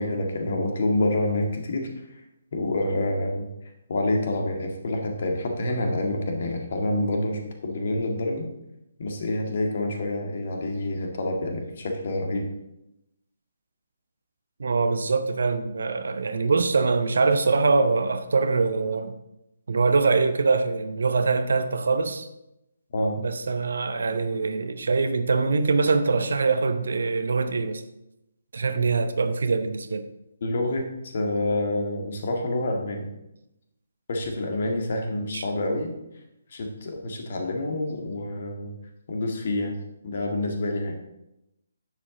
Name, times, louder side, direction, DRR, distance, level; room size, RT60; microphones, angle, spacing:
voice 1, 0.0-1.9 2.5-3.5 3.9-8.5 9.0-12.5 22.9-23.2 28.7-28.8 30.4-30.9 31.1-33.1 34.1-35.9 36.5-38.7 39.1-39.8 40.0-41.0, left 1 dB, 45° left, 2 dB, 1.9 m, -27 dB
voice 2, 14.6-19.1 19.7-22.3 23.2-27.8 28.5-30.0 35.3-35.4, right 4 dB, 55° right, 10 dB, 0.8 m, -23 dB
10.0 x 7.5 x 3.9 m, 0.87 s
figure-of-eight pair, 140°, 0 cm